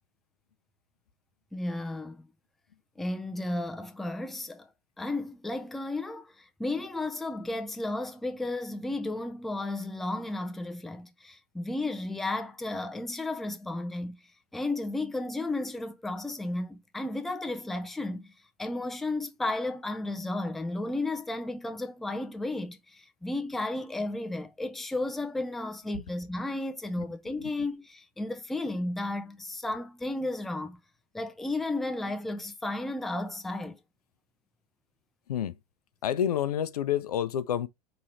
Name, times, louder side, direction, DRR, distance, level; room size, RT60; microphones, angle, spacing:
voice 1, 1.5-2.3 3.0-4.7 5.0-14.2 14.5-18.3 18.6-30.8 31.1-33.8, left 2 dB, ahead, 0.4 m, -33 dB
voice 2, 36.0-37.7, left 10 dB, 70° left, 0.5 m, -28 dB
4.8 x 3.0 x 2.7 m
figure-of-eight pair, 90°, 20 cm